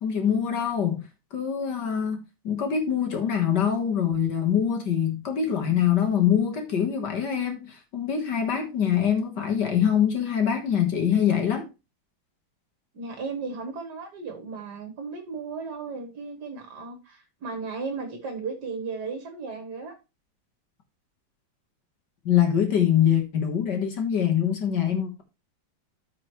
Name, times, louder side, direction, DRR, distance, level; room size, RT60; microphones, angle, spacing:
voice 1, 0.0-2.2 2.4-11.7 22.3-25.2, left 9 dB, 60° left, 1.9 m, -24 dB
voice 2, 12.9-19.9, right 4 dB, 55° right, 1.9 m, -35 dB
13.5 x 4.8 x 3.1 m
omnidirectional pair, 2.2 m